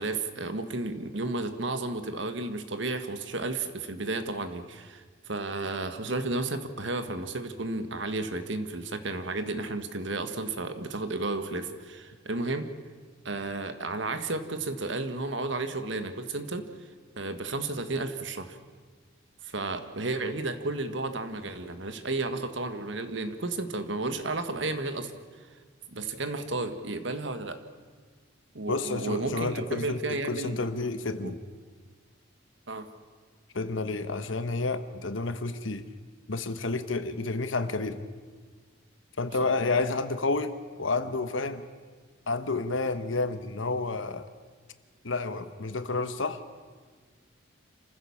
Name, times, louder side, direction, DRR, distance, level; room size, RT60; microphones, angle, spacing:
voice 1, 0.0-12.7 13.2-16.7 17.1-18.6 19.4-25.1 25.9-27.6 28.5-30.6 31.2-31.3 32.7-32.9 39.4-39.5, right 2 dB, 65° right, 9 dB, 1.6 m, -32 dB
voice 2, 28.7-31.4 33.5-35.9 36.3-38.0 39.2-41.6 42.3-44.3 45.0-46.4, left 3 dB, 75° left, 11 dB, 1.2 m, -30 dB
27.5 x 15.5 x 7.2 m, 1.5 s
head